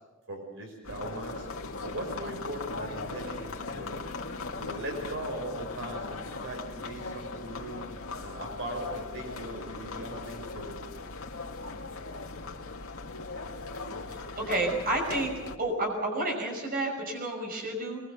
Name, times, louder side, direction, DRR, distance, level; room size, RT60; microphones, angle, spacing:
voice 1, 0.3-1.5 1.8-3.9 4.6-7.9 8.2-10.8, right 1 dB, 60° right, 2 dB, 5.6 m, -39 dB
sound 1, 0.8-15.6, left 3 dB, 75° left, 2.3 m, -39 dB
voice 2, 14.4-15.3 15.6-18.0, right 2 dB, 45° right, 1 dB, 5.9 m, -30 dB
23.0 x 22.5 x 6.9 m, 1.2 s
head